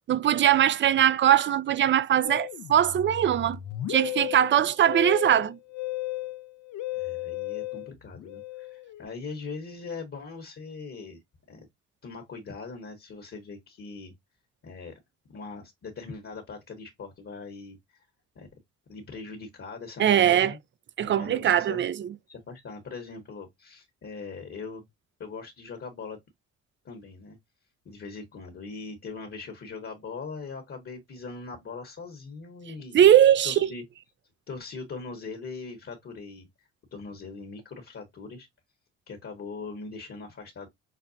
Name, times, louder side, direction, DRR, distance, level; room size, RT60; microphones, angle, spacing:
voice 1, 0.1-3.6 3.9-5.6 20.0-20.5 21.0-22.1 32.9-33.5, right 10 dB, 40° right, 0.4 m, -21 dB
Musical instrument, 2.2-9.0, left 16 dB, 75° left, 0.6 m, -35 dB
voice 2, 6.9-11.2 11.5-11.7 12.0-14.1 14.6-15.0 15.3-17.8 18.3-18.5 18.9-20.6 21.0-21.8 22.3-24.8 25.2-26.2 26.8-27.4 27.8-33.0 33.4-33.8 34.5-36.5 36.9-38.5 39.1-40.7, left 4 dB, 45° left, 1.0 m, -41 dB
5.8 x 2.1 x 2.6 m
cardioid pair, 90°, 30 cm